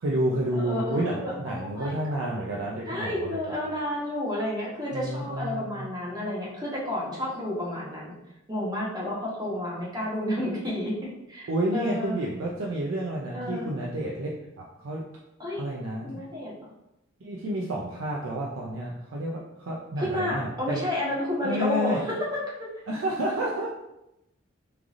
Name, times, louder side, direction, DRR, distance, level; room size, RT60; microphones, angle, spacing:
voice 1, 0.0-3.4 4.9-5.9 11.5-14.3 14.6-15.1 15.6-16.3 17.2-20.8 21.4-22.0 22.9-23.7, right 1 dB, 85° right, -3 dB, 0.5 m, -30 dB
voice 2, 0.5-2.3 2.9-8.1 8.5-10.9 11.3-12.2 13.3-13.7 15.4-15.6 16.0-16.5 20.0-22.7, left 1 dB, 20° right, -6 dB, 1.1 m, -31 dB
3.6 x 3.2 x 2.5 m, 0.88 s
head